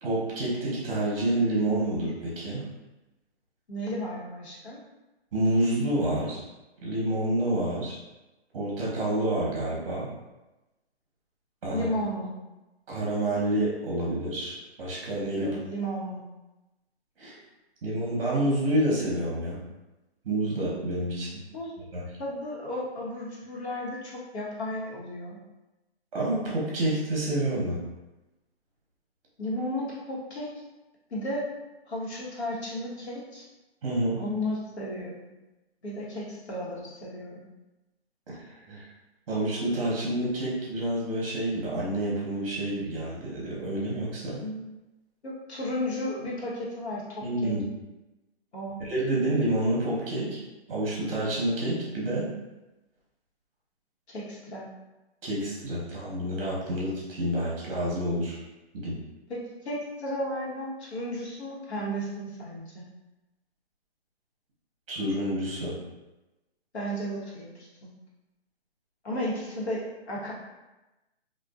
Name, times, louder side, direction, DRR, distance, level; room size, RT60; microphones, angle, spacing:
voice 1, 0.0-2.6 5.3-6.4 6.8-8.0 8.5-10.1 11.6-11.9 12.9-15.6 17.2-17.3 17.8-19.6 20.2-21.3 21.9-22.0 26.1-27.8 33.8-34.2 38.3-38.4 38.7-38.9 39.3-44.4 47.2-47.6 48.9-50.4 50.7-52.3 55.2-58.4 58.7-59.0 64.9-65.7, right 1 dB, 30° right, -5 dB, 0.8 m, -28 dB
voice 2, 3.7-4.8 11.7-12.3 15.4-16.2 21.5-21.7 22.2-25.4 29.4-30.5 31.1-31.4 31.9-33.4 34.2-35.1 35.8-37.4 44.4-44.6 45.2-47.5 48.5-48.8 54.1-54.7 59.3-62.8 66.7-67.9 69.0-70.3, equal, 80° left, -5 dB, 1.1 m, -34 dB
2.5 x 2.3 x 2.3 m, 1.0 s
hypercardioid pair, 155°, 32 cm